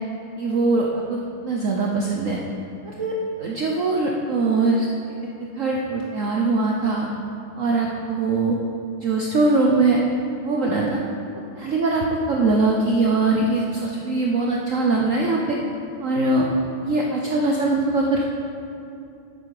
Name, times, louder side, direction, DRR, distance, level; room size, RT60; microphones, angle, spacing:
voice 1, 0.4-1.0 1.4-2.4 3.0-4.9 5.6-7.1 7.6-8.5 9.0-10.0 10.4-11.0 11.6-15.6 16.0-16.5 16.8-18.3, right 3 dB, 75° right, -1 dB, 0.7 m, -21 dB
10.5 x 8.3 x 4.8 m, 2.7 s
omnidirectional pair, 2.4 m